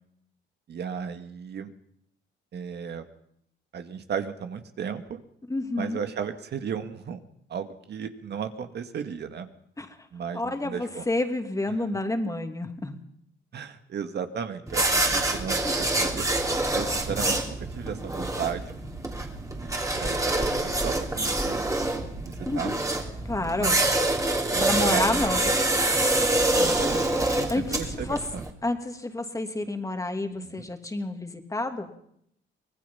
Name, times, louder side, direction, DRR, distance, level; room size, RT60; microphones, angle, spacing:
voice 1, 0.7-1.7 2.5-3.1 3.7-5.2 5.8-7.2 7.5-9.5 10.1-11.0 13.5-16.3 16.7-18.8 19.4-19.8 20.0-21.6 22.2-22.7 23.5-24.1 24.5-25.3 26.5-28.4 30.4-30.7, right 7 dB, 60° right, 7 dB, 1.9 m, -35 dB
voice 2, 5.5-6.0 9.8-10.1 10.3-13.0 15.6-15.7 22.4-22.8 23.2-23.8 24.6-25.5 27.3-28.2 28.6-31.9, left 2 dB, 15° left, 5 dB, 2.7 m, -29 dB
sound 1, 14.7-28.5, right 2 dB, 15° right, 3.1 m, -26 dB
24.5 x 18.5 x 5.7 m, 0.70 s
cardioid pair, 90°, 20 cm